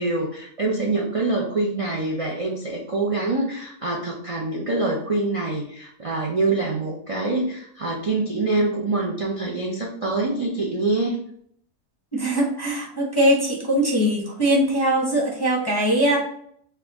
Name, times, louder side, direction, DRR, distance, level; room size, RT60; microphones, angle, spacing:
voice 1, 0.0-11.2, right 2 dB, 35° right, -2 dB, 0.5 m, -25 dB
voice 2, 12.1-16.2, right 1 dB, 20° left, -4 dB, 0.7 m, -21 dB
4.5 x 2.7 x 3.5 m, 0.66 s
omnidirectional pair, 1.5 m